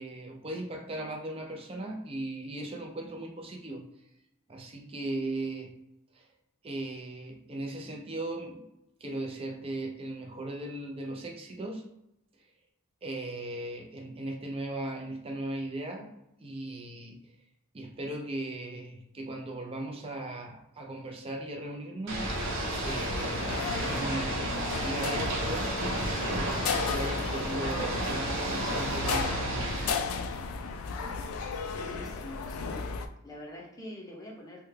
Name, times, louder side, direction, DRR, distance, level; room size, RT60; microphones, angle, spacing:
voice 1, 0.0-3.9 4.5-5.7 6.1-6.3 6.6-8.7 9.0-11.9 13.0-16.1 16.4-17.2 17.7-22.3 22.8-25.8 26.3-29.7, right 1 dB, 25° right, 2 dB, 0.5 m, -38 dB
Ocean / Boat Water vehicle, 22.1-29.9, right 1 dB, 60° right, 0.9 m, -32 dB
sound 1, 22.4-33.1, left 4 dB, 80° left, 0.3 m, -34 dB
voice 2, 31.7-32.9 33.2-34.6, left 1 dB, 15° left, 0 dB, 0.6 m, -44 dB
3.3 x 2.2 x 3.2 m, 0.84 s
head